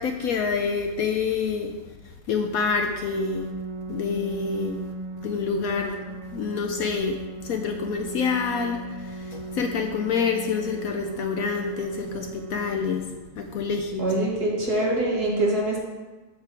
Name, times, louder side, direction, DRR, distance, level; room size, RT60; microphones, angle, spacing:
voice 1, 0.0-1.7 2.3-3.5 3.9-4.8 5.2-7.2 7.4-13.0 13.4-14.1, left 5 dB, 65° left, 4 dB, 1.0 m, -27 dB
Organ, 2.8-13.8, right 2 dB, 45° right, 0.4 m, -37 dB
voice 2, 14.0-15.8, right 1 dB, 65° right, -3 dB, 2.2 m, -24 dB
8.9 x 3.5 x 6.7 m, 1.2 s
omnidirectional pair, 1.8 m